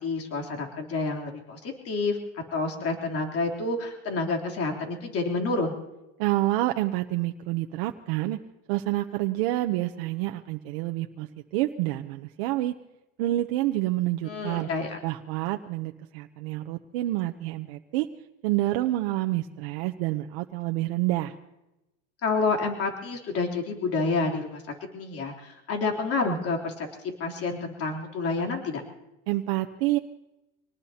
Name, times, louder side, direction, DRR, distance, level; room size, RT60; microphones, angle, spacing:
voice 1, 0.0-5.8 14.2-15.0 22.2-24.6 24.9-26.9 27.2-28.8, left 3 dB, 50° left, 1 dB, 3.3 m, -29 dB
voice 2, 6.2-8.4 8.7-12.7 13.2-14.7 15.0-18.1 18.4-21.3 29.3-30.0, right 16 dB, 85° right, 5 dB, 0.8 m, -28 dB
26.0 x 19.5 x 2.9 m, 0.96 s
supercardioid pair, 105°, 29 cm